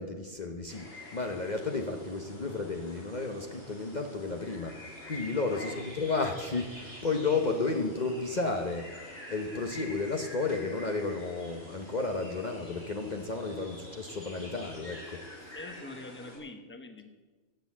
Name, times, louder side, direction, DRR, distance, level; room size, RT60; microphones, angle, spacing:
voice 1, 0.0-15.5, left 3 dB, 40° left, 4 dB, 1.0 m, -33 dB
sound 1, 0.7-16.4, left 1 dB, 55° left, 6.4 m, -47 dB
voice 2, 5.5-5.9 13.7-13.8 15.5-17.1, left 2 dB, 10° left, 6 dB, 1.1 m, -45 dB
15.0 x 8.3 x 7.3 m, 1.3 s
omnidirectional pair, 1.2 m